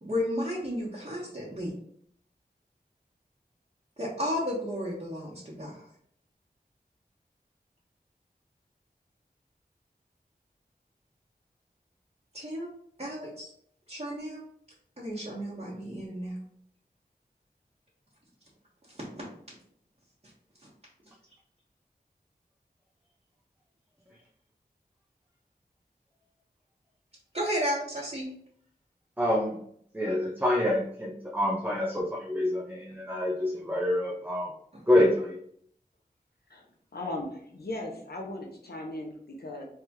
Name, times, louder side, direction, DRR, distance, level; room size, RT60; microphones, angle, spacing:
voice 1, 0.0-1.7 4.0-5.8 12.3-12.7 13.0-13.5 13.9-14.4 15.0-16.4 18.9-19.2 20.6-20.7 27.3-28.3 34.7-34.8, equal, 40° right, -8 dB, 1.4 m, -33 dB
voice 2, 29.2-29.6 29.9-34.5 34.9-35.4, left 1 dB, 10° right, -3 dB, 0.7 m, -26 dB
voice 3, 36.9-39.6, left 1 dB, 80° left, 1 dB, 0.8 m, -37 dB
3.5 x 3.4 x 3.0 m, 0.66 s
wide cardioid pair, 45°, 16 cm